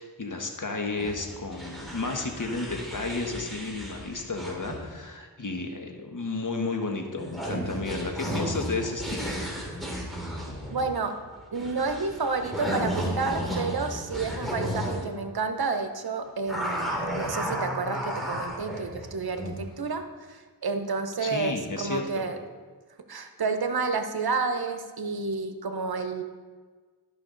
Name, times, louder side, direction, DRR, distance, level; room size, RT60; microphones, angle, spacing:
voice 1, 0.0-9.4 21.2-22.3, left 3 dB, 50° left, 3 dB, 1.4 m, -32 dB
sound 1, 1.0-5.0 7.2-15.0 16.5-19.7, equal, ahead, 2.8 m, -33 dB
voice 2, 10.7-11.2 11.5-22.4 23.1-26.2, right 4 dB, 65° right, 7 dB, 0.9 m, -30 dB
13.0 x 5.7 x 3.9 m, 1.5 s
cardioid pair, 40°, 40 cm